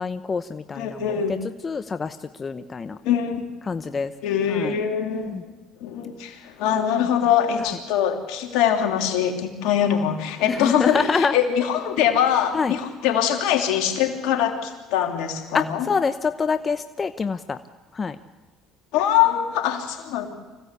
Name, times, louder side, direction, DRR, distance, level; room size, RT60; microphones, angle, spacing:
voice 1, 0.0-1.0 1.3-1.4 1.6-3.0 3.7-4.1 4.5-4.8 5.3-5.4 7.6-7.7 10.5-11.3 12.5-12.7 15.5-17.6 17.9-18.2, left 5 dB, 30° left, 10 dB, 0.9 m, -26 dB
voice 2, 0.7-1.3 3.0-3.5 4.2-5.4 5.8-15.9 18.9-20.3, left 9 dB, 75° left, 4 dB, 3.1 m, -23 dB
25.0 x 16.5 x 8.3 m, 1.3 s
supercardioid pair, 75°, 0 cm